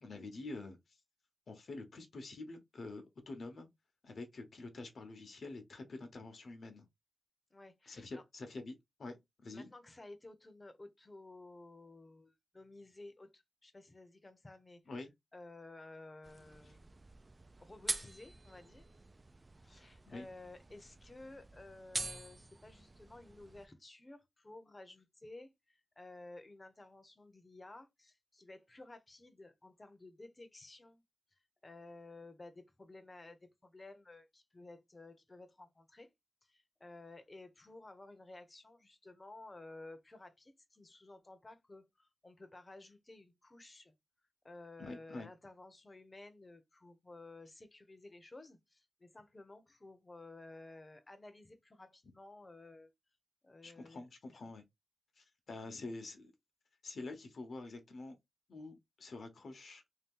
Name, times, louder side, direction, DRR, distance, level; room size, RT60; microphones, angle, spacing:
voice 1, 0.0-1.0 1.5-3.7 4.0-6.9 7.9-9.7 14.9-15.1 20.1-20.3 44.8-45.3 53.6-54.6 55.2-56.3 56.8-58.2 58.5-59.8, left 2 dB, 65° left, 1.0 m, -47 dB
voice 2, 7.5-8.2 9.5-14.8 15.3-17.0 17.6-18.8 19.6-31.0 31.6-36.1 36.5-43.9 44.4-52.9 53.4-54.6, left 2 dB, 25° left, 0.8 m, -54 dB
sound 1, 16.2-23.7, right 2 dB, 25° right, 0.4 m, -46 dB
3.3 x 2.8 x 3.7 m
wide cardioid pair, 150°, 0 cm